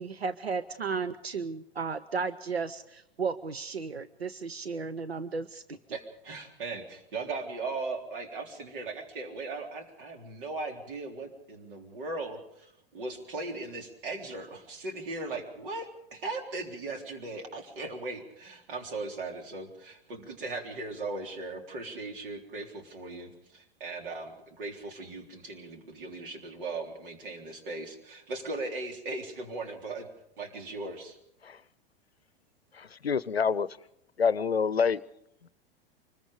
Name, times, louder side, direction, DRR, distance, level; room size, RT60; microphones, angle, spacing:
voice 1, 0.0-5.8, right 5 dB, 90° right, 12 dB, 0.8 m, -34 dB
voice 2, 5.9-30.1 30.4-31.2, right 3 dB, 60° right, 4 dB, 3.6 m, -38 dB
voice 3, 32.8-33.7 34.2-35.0, left 6 dB, 90° left, 20 dB, 0.7 m, -27 dB
25.0 x 21.0 x 5.1 m, 0.80 s
figure-of-eight pair, 95°, 30 cm